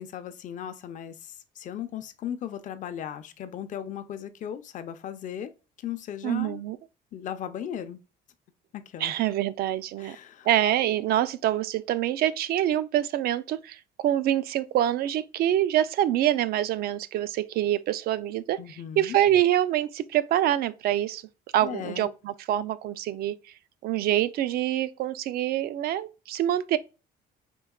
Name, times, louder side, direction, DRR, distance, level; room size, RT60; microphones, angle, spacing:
voice 1, 0.0-5.5 5.8-6.6 7.1-8.0 8.7-9.1 10.0-10.5 18.6-19.2 21.6-22.1, left 9 dB, 50° left, 0.5 m, -37 dB
voice 2, 6.2-6.8 9.0-10.2 10.5-13.8 14.0-21.2 21.5-23.4 23.8-26.8, right 12 dB, 65° right, 0.4 m, -25 dB
4.5 x 2.8 x 2.3 m
cardioid pair, 110°, 17 cm